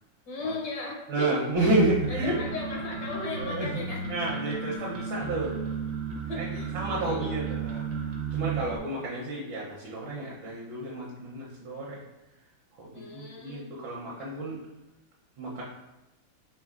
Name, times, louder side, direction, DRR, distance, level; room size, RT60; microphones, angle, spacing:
voice 1, 0.3-1.8 2.1-4.0 4.3-4.6 6.1-6.7 7.0-7.3 12.9-13.7 14.2-14.4, left 2 dB, 70° left, -2 dB, 1.5 m, -37 dB
voice 2, 1.1-2.4 3.4-5.5 6.3-6.5 6.7-7.8 8.3-12.0 12.8-14.6 15.4-15.6, right 2 dB, 80° right, -5 dB, 1.5 m, -30 dB
sound 1, 1.5-8.8, right 4 dB, 60° right, 0.6 m, -34 dB
5.3 x 3.4 x 2.4 m, 0.98 s
omnidirectional pair, 2.0 m